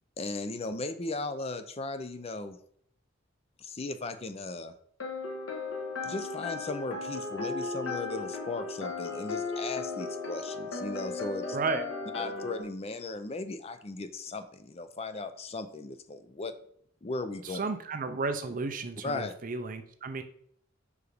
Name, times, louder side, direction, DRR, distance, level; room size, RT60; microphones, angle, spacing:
voice 1, 0.2-2.6 3.6-4.7 6.0-11.6 12.1-16.5 17.0-17.6 19.0-19.3, left 3 dB, 30° left, 10 dB, 0.5 m, -37 dB
sound 1, 5.0-12.6, left 3 dB, 85° left, 1.5 m, -36 dB
voice 2, 11.5-11.8 17.4-20.2, right 4 dB, 45° right, 8 dB, 0.5 m, -33 dB
5.3 x 4.8 x 5.0 m, 0.63 s
head